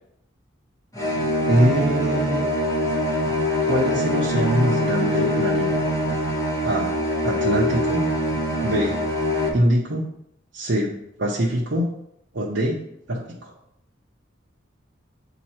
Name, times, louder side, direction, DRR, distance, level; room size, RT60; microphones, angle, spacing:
sound 1, 0.9-9.5, equal, 15° left, 1.1 m, -23 dB
voice 1, 1.5-2.5 3.6-5.7 6.6-6.9 7.2-8.0 8.6-9.0 9.5-10.0 10.5-10.9 11.2-11.9 12.3-12.8 13.1-13.5, equal, 60° right, -5 dB, 0.8 m, -23 dB
7.4 x 3.0 x 4.3 m, 0.75 s
head